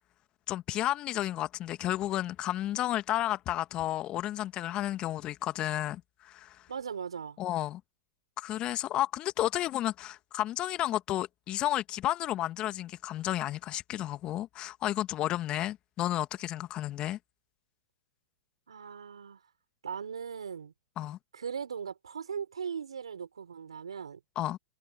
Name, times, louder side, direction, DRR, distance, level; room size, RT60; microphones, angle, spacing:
voice 1, 0.5-6.7 7.4-7.8 8.4-17.2 21.0-21.2 24.4-24.6, left 13 dB, 35° left, 1.8 m, -32 dB
voice 2, 6.7-7.4 18.7-19.4 19.8-20.7 21.3-24.2, right 7 dB, 85° right, 5.6 m, -39 dB
hypercardioid pair, 115°, 3 cm